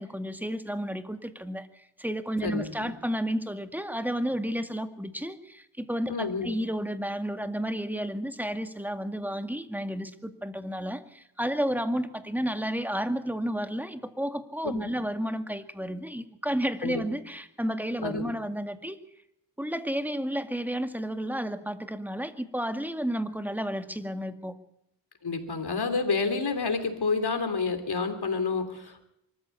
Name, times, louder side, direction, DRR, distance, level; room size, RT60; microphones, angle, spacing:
voice 1, 0.0-19.0 19.6-24.6, equal, 5° right, 8 dB, 2.1 m, -32 dB
voice 2, 2.4-2.9 6.1-6.5 14.6-14.9 16.8-17.0 18.0-18.3 25.2-29.0, left 4 dB, 65° left, 9 dB, 3.4 m, -29 dB
24.0 x 14.5 x 8.5 m, 0.78 s
cardioid pair, 55°, 42 cm